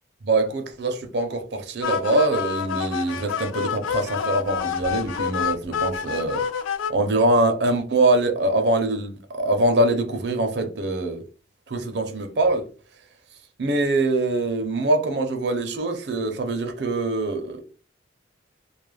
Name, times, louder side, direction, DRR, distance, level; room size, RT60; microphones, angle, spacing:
voice 1, 0.2-6.4 6.9-11.2 11.7-12.7 13.6-17.6, right 2 dB, 60° right, 0.5 m, -23 dB
sound 1, 1.8-6.9, left 7 dB, 90° left, 0.3 m, -28 dB
2.3 x 2.0 x 3.2 m
head